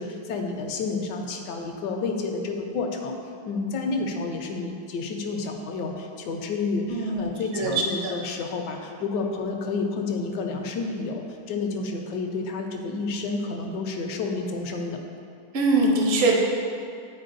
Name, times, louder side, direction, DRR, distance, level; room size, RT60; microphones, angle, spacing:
voice 1, 0.0-3.2 3.4-15.0, left 3 dB, 70° left, 3 dB, 1.2 m, -30 dB
voice 2, 6.9-7.7 8.0-8.1 15.5-16.4, right 2 dB, 50° right, -1 dB, 0.7 m, -23 dB
11.0 x 4.4 x 2.6 m, 2.4 s
omnidirectional pair, 2.1 m